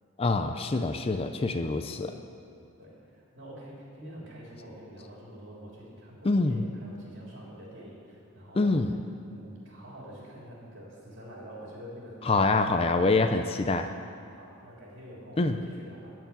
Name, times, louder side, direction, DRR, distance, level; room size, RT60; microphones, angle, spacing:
voice 1, 0.2-2.2 6.2-6.6 8.6-8.9 12.3-13.9 15.4-15.6, left 3 dB, 25° left, 7 dB, 0.4 m, -25 dB
voice 2, 2.8-8.7 9.3-12.7 14.3-16.1, equal, 55° right, -4 dB, 3.2 m, -46 dB
13.5 x 4.7 x 8.7 m, 2.5 s
head